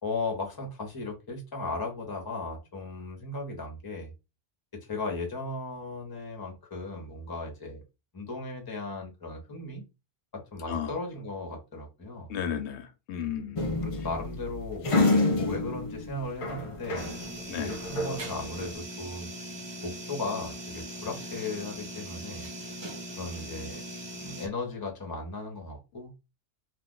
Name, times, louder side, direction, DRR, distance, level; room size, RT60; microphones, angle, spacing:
voice 1, 0.0-4.1 4.9-7.8 8.1-9.8 10.3-12.3 13.8-17.1 17.6-19.3 19.8-22.5 23.2-23.8 24.2-26.1, left 3 dB, 25° left, 0.8 m, -36 dB
voice 2, 12.3-13.6 17.5-17.7, left 8 dB, 90° left, 0.9 m, -33 dB
sound 1, 13.6-17.3 17.6-18.7, left 2 dB, 55° left, 0.3 m, -28 dB
sound 2, 16.9-24.5, right 1 dB, 30° right, 0.5 m, -40 dB
2.5 x 2.4 x 3.7 m
omnidirectional pair, 1.1 m